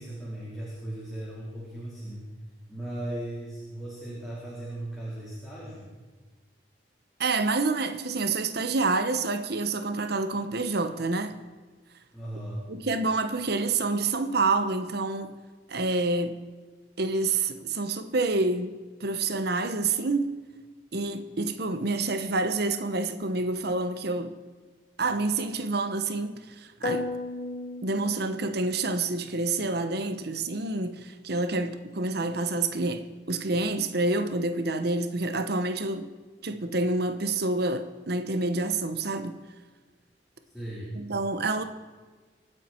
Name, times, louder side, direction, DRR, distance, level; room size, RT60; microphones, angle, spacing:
voice 1, 0.0-2.3 2.7-5.9 12.1-12.6 40.5-40.9, right 1 dB, ahead, 4.2 m, -37 dB
voice 2, 7.2-11.4 12.3-12.4 12.7-15.3 15.7-16.4 17.0-20.3 20.9-24.3 25.0-27.1 27.8-36.1 36.4-39.4 40.9-41.6, right 3 dB, 60° right, 1.0 m, -28 dB
sound 1, 26.8-28.8, left 2 dB, 45° left, 1.4 m, -34 dB
25.0 x 9.9 x 4.5 m
head